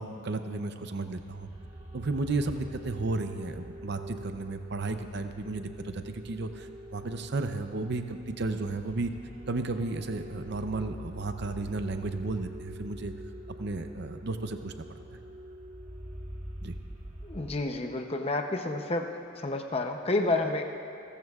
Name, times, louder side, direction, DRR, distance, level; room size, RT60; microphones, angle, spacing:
voice 1, 0.0-1.5 1.9-9.1 9.5-13.1 13.6-14.8 16.6-16.8, right 3 dB, 55° right, 7 dB, 0.6 m, -33 dB
sound 1, 1.0-17.5, equal, 35° right, 1.5 m, -45 dB
voice 2, 17.2-19.1 19.4-20.6, left 2 dB, 30° left, 4 dB, 0.6 m, -29 dB
29.5 x 14.0 x 2.4 m, 2.6 s
head